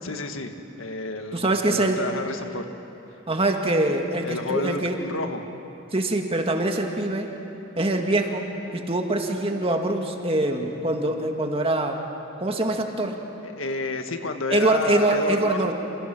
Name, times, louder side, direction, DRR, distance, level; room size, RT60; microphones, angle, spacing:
voice 1, 0.0-2.6 4.2-5.4 13.4-15.7, left 2 dB, 80° left, 6 dB, 1.7 m, -30 dB
voice 2, 1.3-2.0 3.3-5.0 5.9-7.3 7.8-12.0 12.4-13.2 14.5-15.7, right 2 dB, 30° right, 3 dB, 2.0 m, -24 dB
28.0 x 27.5 x 6.1 m, 2.9 s
head